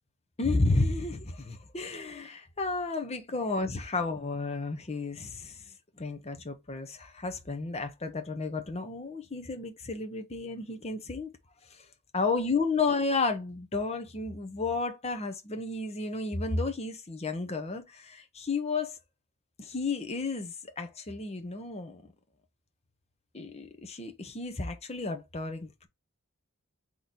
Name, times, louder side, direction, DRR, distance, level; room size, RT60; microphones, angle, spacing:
voice 1, 0.4-5.6 6.0-11.3 11.7-11.8 12.1-19.0 19.6-22.1 23.3-25.9, left 3 dB, 30° left, 0.7 m, -32 dB
4.1 x 3.1 x 3.7 m
head